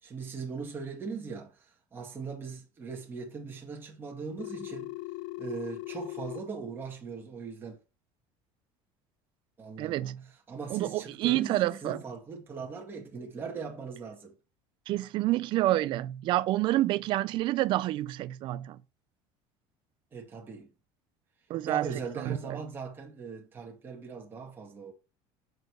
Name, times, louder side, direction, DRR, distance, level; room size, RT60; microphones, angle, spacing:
voice 1, 0.0-1.7 1.9-5.0 5.4-7.8 9.6-10.2 10.5-14.3 20.1-20.7 21.6-24.9, right 5 dB, 20° right, 1.8 m, -40 dB
Telephone, 4.4-6.4, left 20 dB, 80° left, 0.4 m, -39 dB
voice 2, 9.8-10.2 10.7-12.0 14.9-18.8 21.5-21.9 22.2-22.6, right 16 dB, 45° right, 0.5 m, -28 dB
6.6 x 4.4 x 4.6 m
cardioid pair, 160°, 11 cm